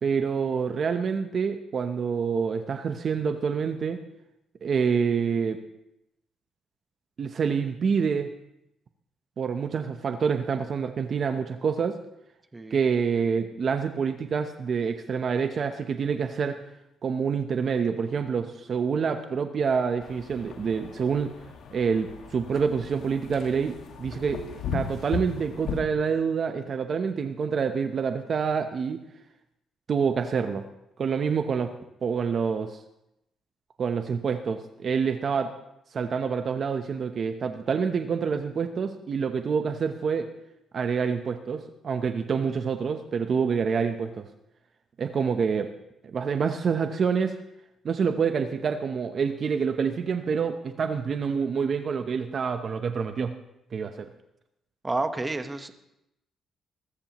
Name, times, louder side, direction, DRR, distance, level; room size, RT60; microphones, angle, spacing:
voice 1, 0.0-4.0 4.6-5.6 7.2-8.3 9.4-12.0 12.7-16.6 17.0-21.3 21.7-24.4 24.7-29.0 29.9-30.6 31.0-31.7 32.0-32.8 33.8-35.5 35.9-40.3 40.7-44.2 45.0-45.7 46.1-47.3 47.8-53.3 53.7-54.1, right 6 dB, 50° right, 7 dB, 0.9 m, -27 dB
sound 1, 20.0-25.8, left 5 dB, 75° left, 1.8 m, -37 dB
voice 2, 54.8-55.8, right 2 dB, 20° right, 7 dB, 1.2 m, -30 dB
21.0 x 13.0 x 3.1 m, 0.86 s
cardioid pair, 90°, 0 cm